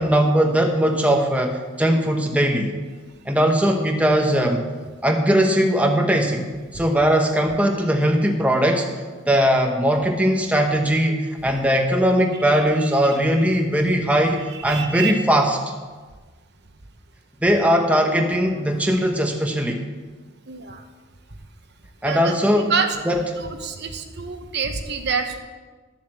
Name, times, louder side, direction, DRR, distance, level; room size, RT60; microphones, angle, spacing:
voice 1, 0.0-2.7 3.3-4.6 5.0-6.5 6.7-8.9 9.3-15.7 17.4-19.8 22.0-23.3, equal, 5° right, 3 dB, 0.9 m, -20 dB
voice 2, 14.5-15.2 20.5-20.8 22.0-23.0 23.4-25.4, right 5 dB, 55° right, 6 dB, 1.1 m, -27 dB
12.5 x 7.5 x 7.5 m, 1.4 s
head